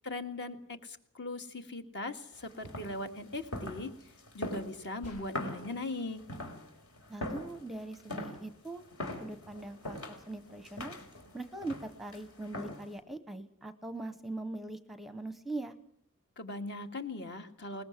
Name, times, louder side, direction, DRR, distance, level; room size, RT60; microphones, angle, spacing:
voice 1, 0.0-3.9 4.3-6.2 16.4-17.8, left 2 dB, 55° left, 7 dB, 2.0 m, -39 dB
sound 1, 2.3-13.0, left 1 dB, 70° left, 4.1 m, -43 dB
sound 2, 5.0-5.7, equal, 90° left, 4.9 m, -52 dB
voice 2, 7.1-8.8 9.2-10.9 11.3-15.7, right 2 dB, ahead, 12 dB, 0.8 m, -41 dB
21.5 x 20.0 x 7.5 m, 0.66 s
head